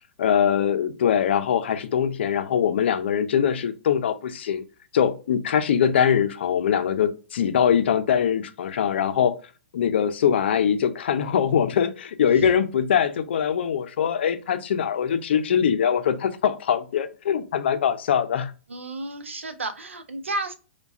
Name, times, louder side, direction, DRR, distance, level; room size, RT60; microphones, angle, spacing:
voice 1, 0.2-4.6 4.9-9.3 9.7-18.5, left 8 dB, 60° left, 0.5 m, -22 dB
voice 2, 18.7-20.5, right 2 dB, 80° right, 0.6 m, -32 dB
4.6 x 2.3 x 2.5 m
figure-of-eight pair, 115°, 7 cm